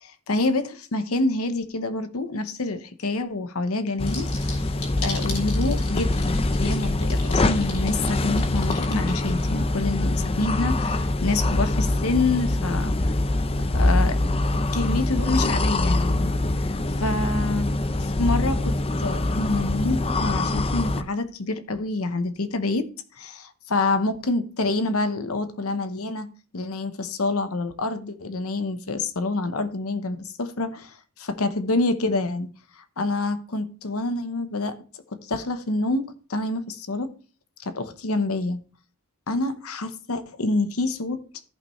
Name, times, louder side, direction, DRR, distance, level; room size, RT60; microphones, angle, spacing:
voice 1, 0.0-4.7 5.0-12.9 13.7-14.2 14.7-16.3 16.6-18.7 19.0-22.9 23.2-26.3 26.5-32.5 33.0-34.8 35.2-37.1 37.6-38.6 39.3-41.2, left 2 dB, 70° left, 0.9 m, -27 dB
sound 1, 4.0-21.0, left 2 dB, 25° left, 0.5 m, -24 dB
sound 2, 4.1-9.6, left 5 dB, 90° left, 3.4 m, -37 dB
14.5 x 5.5 x 3.1 m
head